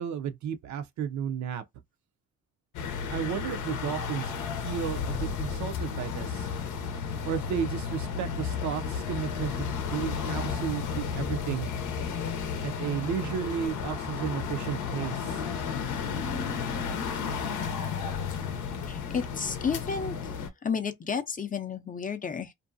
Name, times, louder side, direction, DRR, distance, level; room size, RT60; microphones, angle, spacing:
voice 1, 0.0-1.6 3.1-4.3 4.6-6.5 7.2-11.7 12.6-15.4, right 8 dB, 70° right, 0.5 m, -33 dB
sound 1, 2.7-20.5, left 6 dB, 85° left, 0.7 m, -33 dB
voice 2, 18.9-20.2 20.6-22.5, left 6 dB, 30° left, 0.5 m, -31 dB
2.5 x 2.2 x 2.5 m
cardioid pair, 90°, 30 cm